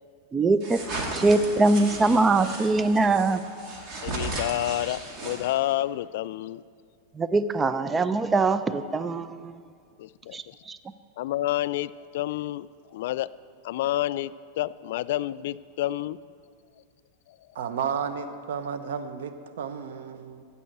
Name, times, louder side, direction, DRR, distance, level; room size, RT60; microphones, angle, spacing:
voice 1, 0.3-0.8 1.1-3.4 7.2-9.6 10.3-10.8, right 3 dB, 15° right, 13 dB, 0.4 m, -23 dB
sound 1, 0.6-5.7, right 2 dB, 35° right, 2.0 m, -35 dB
voice 2, 4.0-6.6 10.0-10.5 11.2-13.3 13.6-16.2 17.3-17.4, left 14 dB, 65° left, 17 dB, 0.3 m, -29 dB
voice 3, 17.5-20.4, right 7 dB, 85° right, 10 dB, 0.9 m, -32 dB
15.0 x 5.5 x 8.1 m, 2.2 s
supercardioid pair, 160°, 0 cm